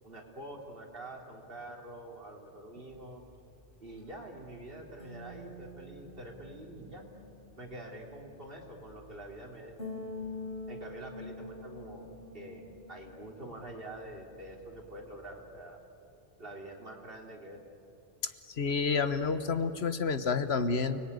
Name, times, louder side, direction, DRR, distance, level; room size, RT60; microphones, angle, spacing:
voice 1, 0.0-3.2 3.8-7.0 7.6-9.8 10.7-12.1 12.3-15.8 16.4-17.6, right 1 dB, 60° right, 1 dB, 3.4 m, -46 dB
sound 1, 2.9-15.4, left 2 dB, 55° left, 5.1 m, -47 dB
voice 2, 18.2-21.0, left 5 dB, 85° left, 11 dB, 1.5 m, -30 dB
30.0 x 20.5 x 9.7 m, 2.9 s
omnidirectional pair, 1.1 m